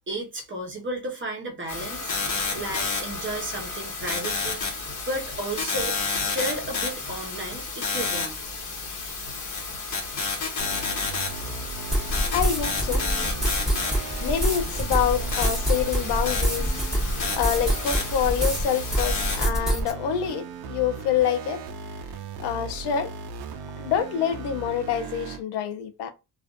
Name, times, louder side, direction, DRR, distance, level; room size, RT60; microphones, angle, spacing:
voice 1, 0.1-2.2 2.5-4.6 5.1-6.0 6.2-8.4, right 1 dB, 30° right, 0.9 m, -33 dB
sound 1, 1.7-19.5, left 4 dB, 45° left, 1.1 m, -31 dB
sound 2, 10.6-25.4, right 4 dB, 70° right, 0.5 m, -37 dB
sound 3, 11.9-18.6 18.9-19.9, right 1 dB, ahead, 1.1 m, -26 dB
voice 2, 12.3-13.1 14.2-16.7 17.1-21.6 22.4-23.1 23.8-26.1, left 9 dB, 85° left, 0.6 m, -26 dB
2.4 x 2.4 x 2.3 m
cardioid pair, 105°, 39 cm